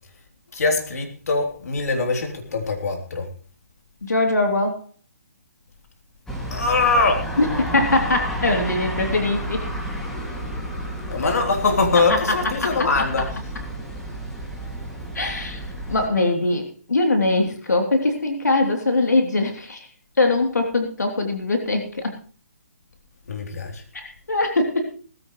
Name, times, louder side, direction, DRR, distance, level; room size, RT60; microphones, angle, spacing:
voice 1, 0.5-3.3 6.5-7.3 11.1-13.4 23.3-23.8, left 3 dB, 65° left, 3.4 m, -22 dB
voice 2, 4.0-4.8 7.4-9.7 11.9-12.2 12.6-12.9 15.1-15.6 15.9-19.9 20.2-22.1 23.9-24.9, left 2 dB, 90° left, 3.3 m, -22 dB
sound 1, 6.3-16.1, equal, 5° left, 2.4 m, -31 dB
18.5 x 15.0 x 3.2 m
hypercardioid pair, 150°, 9 cm